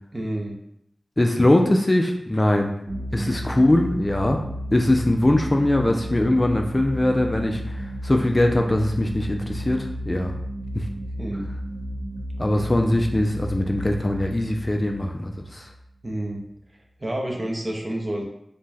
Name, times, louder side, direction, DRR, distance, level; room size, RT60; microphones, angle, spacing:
voice 1, 0.1-0.6 3.1-3.4 11.2-11.4 16.0-16.4 17.0-18.2, right 1 dB, 35° right, 0 dB, 0.6 m, -29 dB
voice 2, 1.2-2.7 3.1-4.4 4.7-10.3 10.7-10.8 12.4-15.7, left 1 dB, 25° left, 3 dB, 0.3 m, -21 dB
sound 1, 2.9-16.1, equal, 85° right, 1.0 m, -33 dB
2.6 x 2.2 x 3.2 m, 0.74 s
wide cardioid pair, 55°, 0 cm